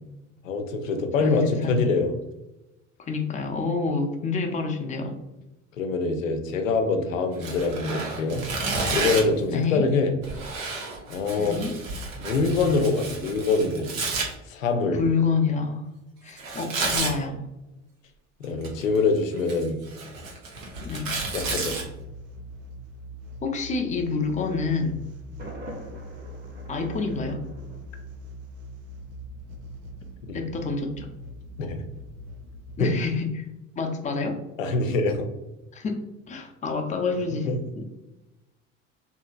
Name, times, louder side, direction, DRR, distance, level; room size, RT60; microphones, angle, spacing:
voice 1, 0.4-2.1 5.8-8.4 8.9-10.1 11.1-11.7 12.2-13.9 14.5-15.0 18.4-19.8 21.3-21.8 30.3-30.4 31.6-31.8 32.8-32.9 34.6-35.3 37.3-37.6, left 3 dB, 85° left, 6 dB, 0.5 m, -24 dB
voice 2, 1.2-2.0 3.0-5.2 9.5-9.9 11.4-11.7 14.9-15.8 16.2-17.4 20.8-21.1 23.4-24.9 26.7-27.4 30.3-31.1 32.8-33.4 33.8-34.4 35.7-36.0 36.3-37.9, left 4 dB, 20° left, 4 dB, 0.5 m, -28 dB
Tearing, 7.4-9.4 10.2-14.3 16.4-17.2 18.4-19.0 19.4-21.8, right 3 dB, 85° right, 0.8 m, -31 dB
sound 1, 21.0-32.9, equal, 40° right, 0.4 m, -42 dB
Thunder, 25.4-28.4, right 1 dB, 25° right, 0.8 m, -43 dB
2.8 x 2.6 x 2.3 m, 0.97 s
hypercardioid pair, 65°, 39 cm